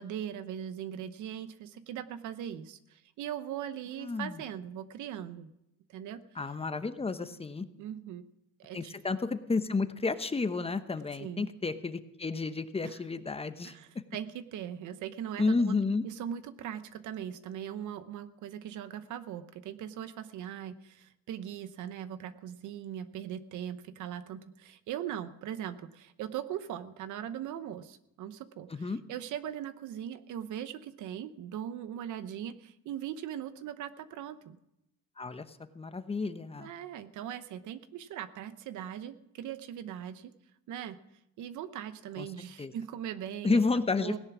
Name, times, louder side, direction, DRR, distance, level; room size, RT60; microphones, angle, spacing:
voice 1, 0.0-5.5 5.9-6.2 7.8-8.2 8.6-8.9 11.2-11.5 12.8-13.0 13.6-15.8 16.0-34.6 36.6-40.3 40.7-41.0 41.4-43.6 44.0-44.2, right 10 dB, 75° right, 13 dB, 0.9 m, -40 dB
voice 2, 4.0-4.4 6.4-7.7 8.7-13.7 15.4-16.0 28.7-29.0 35.2-36.7 42.2-42.3 42.6-42.7 43.4-44.2, left 4 dB, 20° left, 11 dB, 0.9 m, -31 dB
17.0 x 10.5 x 6.1 m, 0.85 s
cardioid pair, 105°, 30 cm